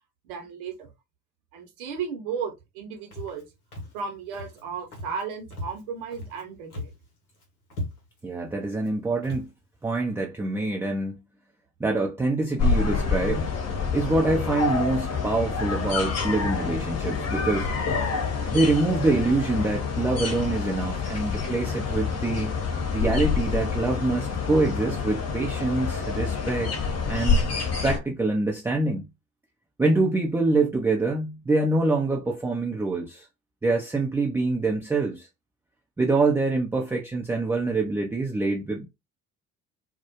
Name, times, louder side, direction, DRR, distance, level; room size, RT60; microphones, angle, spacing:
voice 1, 0.2-0.9 1.5-3.5 3.9-6.9, right 6 dB, 70° right, 0.8 m, -34 dB
Walk footsteps, 3.1-3.4 3.7-4.0 4.3-4.6 4.9-5.2 5.5-6.4 6.7-7.1 7.3-7.4 7.7-8.2 8.8-8.9 9.2-9.5, left 1 dB, 85° left, 0.8 m, -37 dB
voice 2, 8.2-9.5 9.8-11.2 11.8-13.6 13.9-17.7 18.5-22.5 22.9-27.4 27.8-29.1 29.8-33.3 33.6-35.3 36.0-38.9, right 2 dB, 5° right, 0.4 m, -25 dB
sound 1, 12.6-28.0, left 5 dB, 35° left, 0.8 m, -27 dB
2.2 x 2.0 x 2.8 m
figure-of-eight pair, 55°, 44 cm